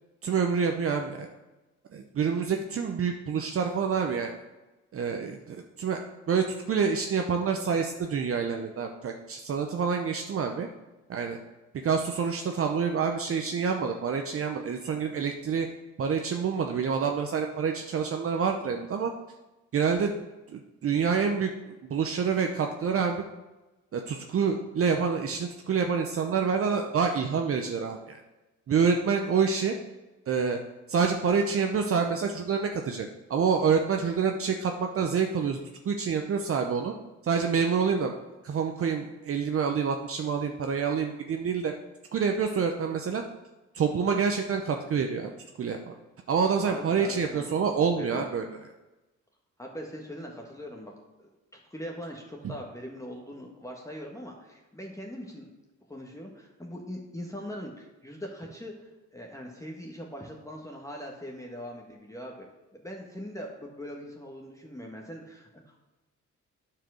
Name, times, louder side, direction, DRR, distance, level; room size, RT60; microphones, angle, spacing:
voice 1, 0.2-1.3 1.9-4.3 4.9-10.7 11.1-11.4 11.8-15.7 16.0-19.1 19.7-20.1 20.5-23.2 23.9-28.2 28.7-29.8 30.3-30.6 30.9-35.6 35.8-36.9 37.2-38.1 38.4-41.7 42.1-43.2 43.7-45.3 45.6-45.8 46.3-48.5 52.4-52.5, right 6 dB, 50° right, 4 dB, 0.8 m, -27 dB
voice 2, 46.6-47.5 47.9-48.2 49.6-50.9 51.2-55.5 55.9-62.5 62.7-65.8, equal, 10° left, -1 dB, 1.5 m, -41 dB
9.1 x 4.9 x 6.3 m, 1.1 s
cardioid pair, 90°, 30 cm